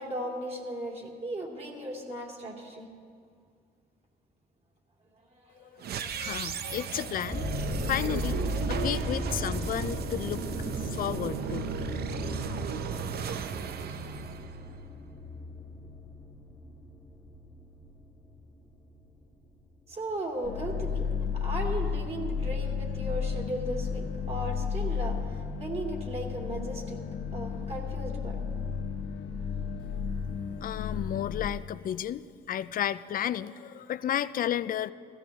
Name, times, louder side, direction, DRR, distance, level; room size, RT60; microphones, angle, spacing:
voice 1, 0.0-2.9 19.9-21.1 21.3-25.2 25.6-27.0 27.3-28.4, right 1 dB, 35° right, 1 dB, 2.5 m, -36 dB
voice 2, 5.6-10.5 10.8-11.7 30.6-34.9, left 11 dB, 50° left, 15 dB, 0.4 m, -33 dB
sound 1, 5.8-15.0, right 8 dB, 60° right, 0.7 m, -36 dB
sound 2, 7.3-19.6 20.1-20.5 21.1-21.2 21.5-21.6, equal, 15° left, 1.5 m, -36 dB
sound 3, 20.4-31.5, left 6 dB, 70° left, 1.0 m, -33 dB
16.0 x 14.5 x 3.6 m, 2.2 s
cardioid pair, 80°, 18 cm